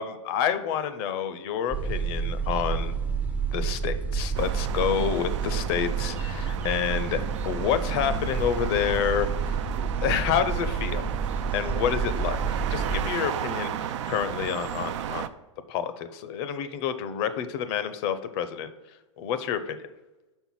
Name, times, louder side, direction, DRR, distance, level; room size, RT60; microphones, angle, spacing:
voice 1, 0.0-3.0 3.5-11.0 11.5-15.2 15.7-18.7 19.2-19.8, left 8 dB, 50° left, 12 dB, 0.7 m, -29 dB
sound 1, 1.7-13.1, right 5 dB, 10° right, 0.5 m, -30 dB
sound 2, 4.3-15.3, right 10 dB, 65° right, 0.4 m, -34 dB
5.5 x 4.5 x 5.6 m, 1.1 s
hypercardioid pair, 110°, 16 cm